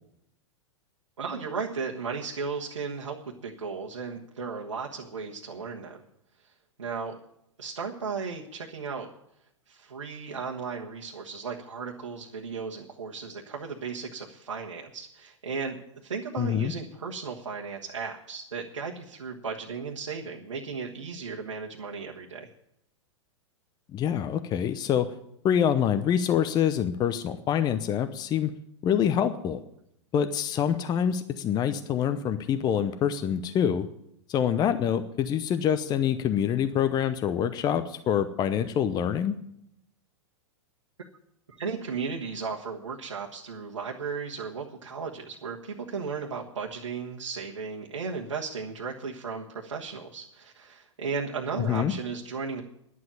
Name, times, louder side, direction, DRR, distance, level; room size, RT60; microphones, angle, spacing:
voice 1, 1.2-3.2 3.4-6.0 6.8-7.2 7.6-9.1 9.7-22.5 41.6-52.6, right 5 dB, 80° right, -2 dB, 1.5 m, -35 dB
voice 2, 16.4-16.7 23.9-25.1 25.4-28.5 28.8-29.6 30.1-33.9 34.3-39.4 51.7-51.9, left 9 dB, 25° left, 10 dB, 0.8 m, -26 dB
11.0 x 7.7 x 9.8 m, 0.76 s
figure-of-eight pair, 105°, 15 cm